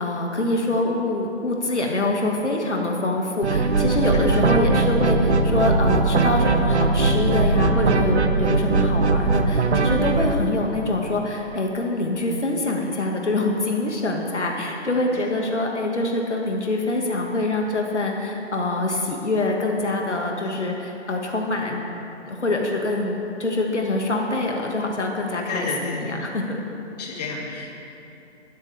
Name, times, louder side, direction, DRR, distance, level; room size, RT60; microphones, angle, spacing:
voice 1, 0.0-21.8 22.3-26.6, left 2 dB, 75° left, 0 dB, 2.1 m, -25 dB
sound 1, 3.4-10.3, right 3 dB, 70° right, 1.1 m, -20 dB
voice 2, 25.5-26.0 27.0-27.7, left 3 dB, 35° left, -2 dB, 2.5 m, -32 dB
19.5 x 12.5 x 3.6 m, 2.9 s
figure-of-eight pair, 140°, 35 cm